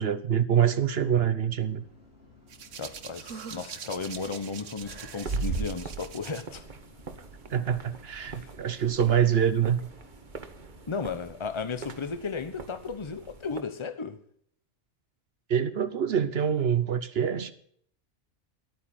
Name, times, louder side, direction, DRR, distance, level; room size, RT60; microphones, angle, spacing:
voice 1, 0.0-1.8 7.5-9.8 15.5-17.5, right 8 dB, 60° right, 12 dB, 1.0 m, -25 dB
sound 1, 1.6-10.9, left 2 dB, 55° left, 4.3 m, -56 dB
Hands, 2.5-6.4 7.5-7.7, right 4 dB, 85° right, 1.4 m, -36 dB
voice 2, 2.8-6.6 8.3-8.5 10.9-14.2, left 5 dB, 25° left, 10 dB, 1.0 m, -35 dB
sound 2, 4.8-13.6, right 4 dB, 45° right, 1.2 m, -45 dB
12.5 x 9.1 x 8.7 m, 0.63 s
omnidirectional pair, 1.2 m